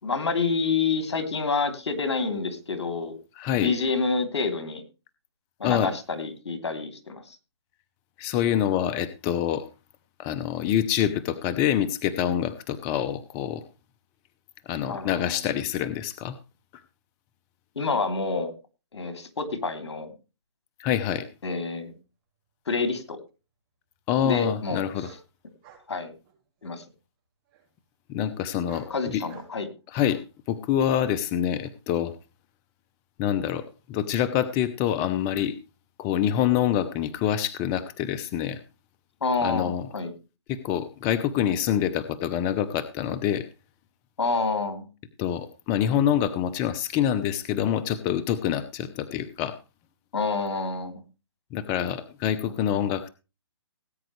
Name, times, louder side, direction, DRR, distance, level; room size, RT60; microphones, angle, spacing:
voice 1, 0.0-3.1 3.6-4.8 5.6-7.4 14.9-15.4 17.7-18.5 18.9-20.1 21.4-21.9 22.7-23.2 24.2-24.9 25.9-26.1 26.6-26.8 28.9-29.7 39.2-40.1 44.2-44.9 50.1-51.0 52.4-52.5, left 4 dB, 75° left, 7 dB, 3.2 m, -28 dB
voice 2, 3.4-3.7 5.6-5.9 8.2-9.7 10.2-13.6 14.7-16.4 20.8-21.3 24.1-25.1 28.1-29.2 29.9-30.2 30.5-32.1 33.2-35.6 36.0-38.6 39.4-39.9 40.5-43.5 45.2-49.6 51.5-53.1, left 10 dB, 25° left, 13 dB, 0.8 m, -26 dB
sound 1, 22.9-23.0 25.0-25.2 25.6-25.9 26.2-26.8 27.5-27.6 28.5-28.9 29.3-29.6 30.0-30.2 30.9-31.1 31.6-31.7, right 9 dB, 30° right, 6.9 m, -49 dB
18.5 x 9.1 x 3.2 m, 0.30 s
hypercardioid pair, 145°, 14 cm